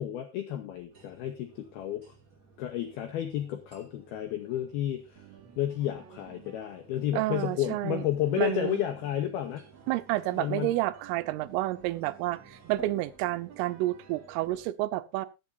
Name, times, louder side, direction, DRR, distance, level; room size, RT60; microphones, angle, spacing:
voice 1, 0.0-2.1 2.6-5.3 5.6-9.6 10.3-10.7, left 12 dB, 80° left, 6 dB, 2.2 m, -32 dB
sound 1, 0.9-14.7, right 4 dB, 30° right, 1.7 m, -55 dB
sound 2, 5.2-14.6, right 10 dB, 60° right, 3.9 m, -54 dB
voice 2, 7.1-8.0 8.4-8.8 9.9-15.3, right 16 dB, 90° right, 12 dB, 3.4 m, -30 dB
21.0 x 7.5 x 2.7 m, 0.26 s
omnidirectional pair, 5.7 m